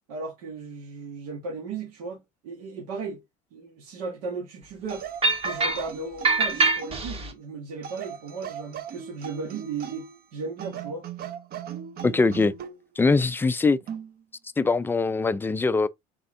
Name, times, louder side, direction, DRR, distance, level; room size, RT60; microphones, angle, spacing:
voice 1, 0.1-3.2 3.5-5.1 5.4-11.0, right 4 dB, 75° right, 1.7 m, -36 dB
sound 1, 4.9-7.1 7.8-10.2 10.6-12.8 13.9-14.1, right 8 dB, 50° right, 0.9 m, -38 dB
sound 2, 5.2-5.9 6.2-7.3, right 3 dB, 30° right, 1.4 m, -24 dB
voice 2, 12.0-12.5 13.0-13.8 14.6-15.9, left 3 dB, 10° left, 0.4 m, -22 dB
4.0 x 3.5 x 3.6 m
hypercardioid pair, 80°, 20 cm